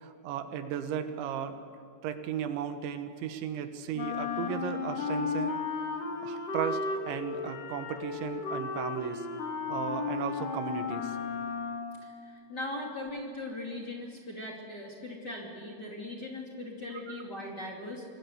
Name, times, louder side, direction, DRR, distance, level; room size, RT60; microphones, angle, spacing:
voice 1, 0.0-1.6 2.0-5.6 6.2-9.3 9.7-11.2 12.8-12.9 17.1-17.2, right 8 dB, 90° right, 8 dB, 3.7 m, -35 dB
Wind instrument woodwind instrument, 3.9-12.1, left 5 dB, 55° left, 3.4 m, -34 dB
voice 2, 12.0-18.0, left 2 dB, 30° left, -1 dB, 2.6 m, -39 dB
26.5 x 19.5 x 8.1 m, 2.4 s
omnidirectional pair, 5.1 m